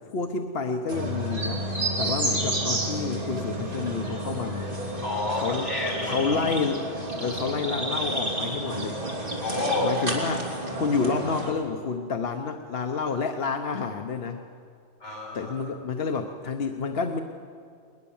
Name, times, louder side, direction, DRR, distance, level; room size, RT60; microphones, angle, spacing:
voice 1, 0.0-1.6 2.0-4.7 5.4-5.7 6.0-9.0 9.8-10.4 10.8-14.4 15.3-17.2, left 5 dB, 60° left, 4 dB, 1.1 m, -29 dB
sound 1, 0.9-11.5, right 1 dB, 50° right, 3.2 m, -30 dB
voice 2, 5.0-6.2 9.4-9.9 15.0-15.5, left 2 dB, 80° left, 0 dB, 6.0 m, -29 dB
20.5 x 20.5 x 7.2 m, 2.3 s
omnidirectional pair, 1.2 m